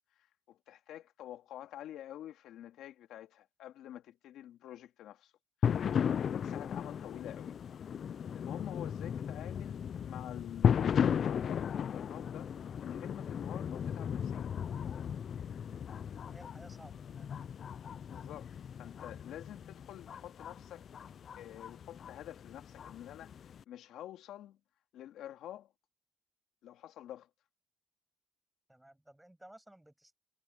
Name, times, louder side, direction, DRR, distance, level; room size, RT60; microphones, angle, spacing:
voice 1, 0.2-5.3 5.6-7.6 8.3-12.5 12.8-14.5 18.1-18.5 18.8-20.9 21.4-24.6 24.9-25.7 26.6-27.3, left 12 dB, 85° left, 2.4 m, -48 dB
sound 1, 5.6-23.6, left 8 dB, 55° left, 0.3 m, -36 dB
voice 2, 16.3-17.4 18.8-19.2 28.7-30.2, right 1 dB, 5° right, 7.0 m, -57 dB
cardioid pair, 90°, 0 cm